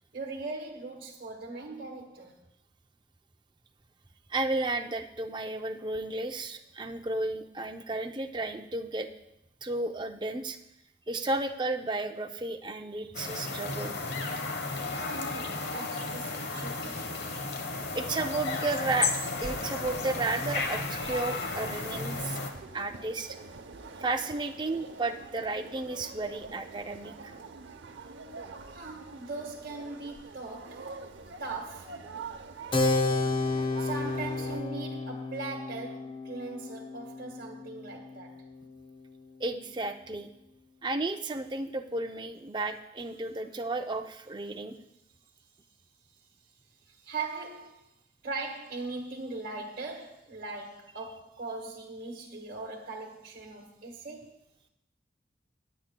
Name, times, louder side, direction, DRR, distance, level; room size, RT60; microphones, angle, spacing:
voice 1, 0.1-2.4 15.0-17.0 28.7-30.9 31.4-31.9 33.8-38.4 46.8-47.8 48.2-54.4, right 3 dB, 50° right, 1.4 m, -40 dB
voice 2, 4.3-9.1 9.6-10.6 11.1-13.9 17.9-19.1 19.4-22.4 22.7-23.4 24.0-27.3 39.4-40.3 40.8-44.8, right 2 dB, 25° right, 0.5 m, -33 dB
sound 1, 13.1-22.5, left 3 dB, 60° left, 1.1 m, -33 dB
sound 2, 17.7-34.6, right 4 dB, 80° right, 0.8 m, -45 dB
Keyboard (musical), 32.7-38.8, left 2 dB, 25° left, 0.7 m, -31 dB
20.0 x 8.5 x 2.2 m
head